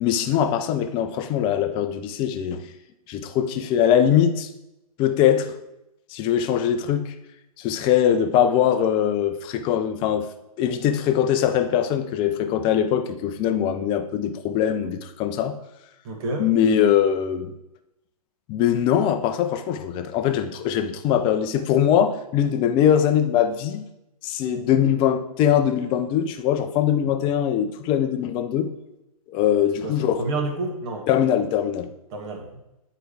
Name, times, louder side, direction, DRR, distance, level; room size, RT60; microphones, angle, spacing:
voice 1, 0.0-2.6 3.1-4.5 5.0-5.5 6.1-7.1 7.6-10.3 10.6-15.6 16.4-17.5 18.5-23.9 24.2-28.7 29.3-30.2 31.1-31.9, left 9 dB, 25° left, 8 dB, 0.6 m, -22 dB
voice 2, 16.0-16.5 29.8-31.1 32.1-32.4, right 2 dB, 40° right, 1 dB, 1.8 m, -29 dB
9.6 x 4.7 x 3.4 m, 0.90 s
figure-of-eight pair, 120°, 19 cm